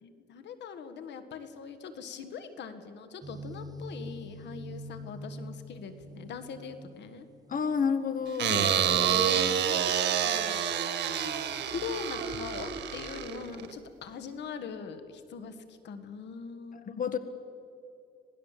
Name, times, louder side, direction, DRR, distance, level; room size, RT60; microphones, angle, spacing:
voice 1, 0.0-7.3 8.7-10.7 11.6-16.8, left 6 dB, 90° left, 9 dB, 1.8 m, -42 dB
sound 1, 3.2-7.8, equal, 20° right, 1.6 m, -44 dB
voice 2, 7.5-8.8 16.9-17.2, left 6 dB, 50° left, 10 dB, 1.4 m, -29 dB
sound 2, 8.4-13.7, right 9 dB, 90° right, 1.7 m, -28 dB
26.5 x 19.0 x 7.6 m, 2.6 s
cardioid pair, 100°, 18 cm